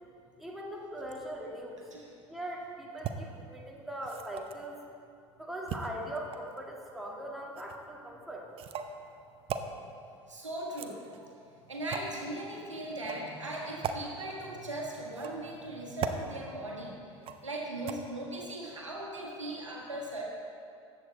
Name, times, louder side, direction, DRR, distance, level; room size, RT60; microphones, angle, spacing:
voice 1, 0.4-1.8 2.3-4.8 5.4-8.4, right 1 dB, ahead, -2 dB, 1.9 m, -40 dB
sound 1, 3.0-3.1 4.0-4.7 5.7-6.6 7.6-7.8 8.6-8.9 9.5-9.7 10.6-11.3 11.9-12.1 13.0-13.2 13.8-14.0 15.1-15.5 16.0-16.2 17.2-17.5 17.9-18.0, right 7 dB, 35° right, 0.7 m, -37 dB
voice 2, 10.3-11.3 11.7-17.0 17.4-20.2, right 1 dB, 80° right, -2 dB, 1.6 m, -39 dB
14.0 x 8.6 x 4.1 m, 2.5 s
figure-of-eight pair, 70°, 15 cm